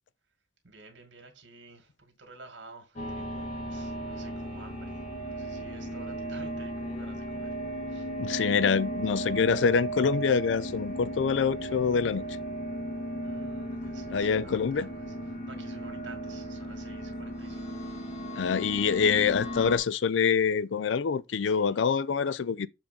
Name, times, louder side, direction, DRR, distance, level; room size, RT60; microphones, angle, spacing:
voice 1, 0.6-7.6 7.9-8.1 13.2-17.7 21.4-21.9, right 3 dB, 85° right, 2.1 m, -51 dB
sound 1, 3.0-19.8, right 1 dB, 40° left, 1.7 m, -36 dB
voice 2, 8.2-12.2 14.1-14.9 18.3-22.7, left 6 dB, 85° left, 0.4 m, -26 dB
7.2 x 3.7 x 5.2 m
head